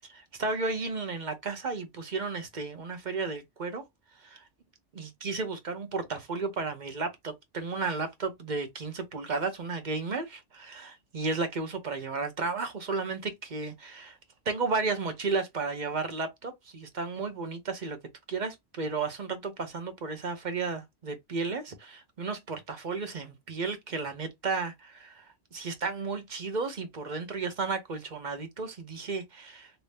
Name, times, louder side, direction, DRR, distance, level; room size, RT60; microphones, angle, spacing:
voice 1, 0.1-3.8 4.2-4.4 5.0-14.2 14.5-18.0 18.3-25.2 25.5-29.7, right 4 dB, 45° right, 0.9 m, -33 dB
2.9 x 2.7 x 3.3 m
omnidirectional pair, 1.1 m